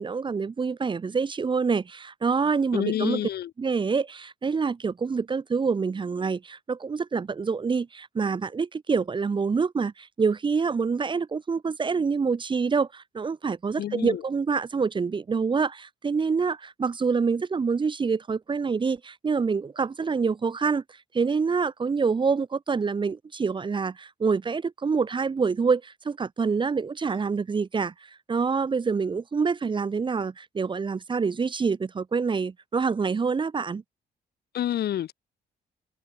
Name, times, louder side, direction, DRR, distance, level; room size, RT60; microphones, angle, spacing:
voice 1, 0.0-3.2 3.6-20.8 21.1-27.9 28.3-33.8, right 5 dB, 30° right, 1.6 m, -26 dB
voice 2, 2.7-3.5 13.8-14.2 34.5-35.1, left 11 dB, 70° left, 5.8 m, -28 dB
cardioid pair, 135°, 17 cm